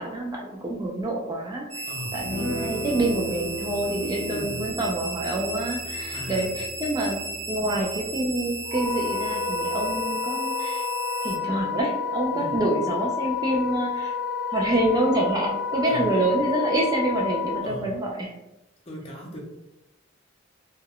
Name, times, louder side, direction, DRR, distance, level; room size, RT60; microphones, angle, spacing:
voice 1, 0.0-1.9 2.1-7.2 7.5-10.9 11.2-14.1 14.5-18.3, right 1 dB, 20° right, -1 dB, 0.3 m, -27 dB
sound 1, 1.7-11.4, right 3 dB, 40° right, 1.1 m, -35 dB
voice 2, 1.9-2.3 4.3-4.8 5.8-6.5 12.3-12.6 15.9-16.2 17.6-18.0 18.8-19.4, left 1 dB, 30° left, -1 dB, 0.6 m, -37 dB
sound 2, 2.2-9.9, equal, 80° left, 0.6 m, -38 dB
Wind instrument woodwind instrument, 8.6-17.6, left 6 dB, 65° right, 0.7 m, -29 dB
2.2 x 2.1 x 3.5 m, 0.93 s
head